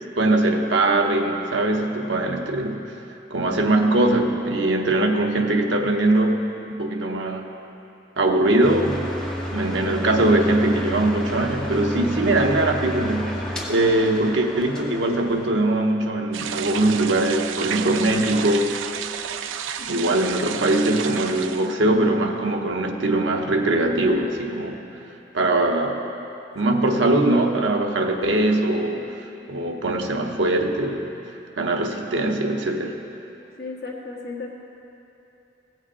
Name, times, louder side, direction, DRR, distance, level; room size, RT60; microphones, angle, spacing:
voice 1, 0.2-2.8 3.3-7.5 8.2-9.0 9.5-13.4 13.7-18.8 19.9-24.8 25.3-26.0 26.5-31.1 31.6-33.0, right 2 dB, 70° right, 3 dB, 0.9 m, -21 dB
sound 1, 8.6-15.5, equal, 5° left, 1.2 m, -31 dB
Rain in Sewer Drain, 16.3-21.7, right 8 dB, 90° right, 0.4 m, -31 dB
voice 2, 19.8-20.2 26.6-26.8 33.6-34.5, left 3 dB, 55° left, -2 dB, 1.4 m, -36 dB
16.0 x 6.4 x 4.9 m, 2.9 s
head